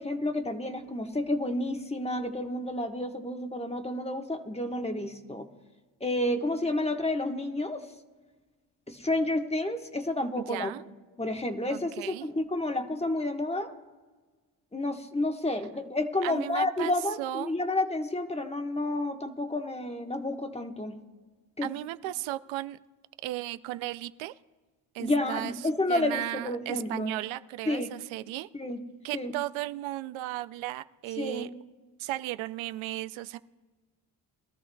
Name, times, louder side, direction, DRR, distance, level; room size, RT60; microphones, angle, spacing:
voice 1, 0.0-5.5 6.0-7.8 8.9-10.7 11.2-13.7 14.7-21.0 21.6-21.7 25.0-27.1 27.7-27.9 28.5-28.8 29.1-29.3 31.2-31.5, left 1 dB, 15° left, 5 dB, 1.3 m, -30 dB
voice 2, 10.5-10.8 11.7-12.3 16.2-17.5 21.6-22.8 23.2-24.3 24.9-25.5 25.9-28.5 29.0-31.5 32.0-33.4, right 16 dB, 85° right, 13 dB, 0.5 m, -35 dB
21.5 x 13.0 x 2.3 m, 1.3 s
supercardioid pair, 55°, 45 cm